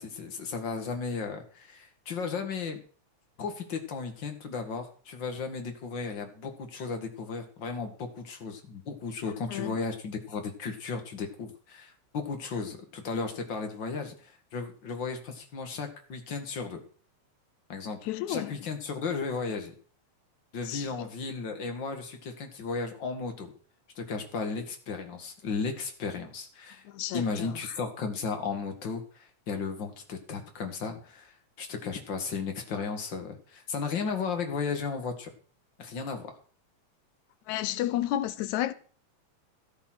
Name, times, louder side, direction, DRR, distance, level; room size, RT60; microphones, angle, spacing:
voice 1, 0.0-2.8 3.4-16.8 17.7-18.0 18.3-19.7 20.5-23.5 24.0-26.8 27.1-35.3 35.8-36.4, left 5 dB, 45° left, 2.3 m, -35 dB
voice 2, 18.1-18.6 20.7-20.9 26.9-27.5 37.5-38.7, left 13 dB, 80° left, 2.1 m, -31 dB
14.0 x 8.2 x 6.2 m
omnidirectional pair, 3.3 m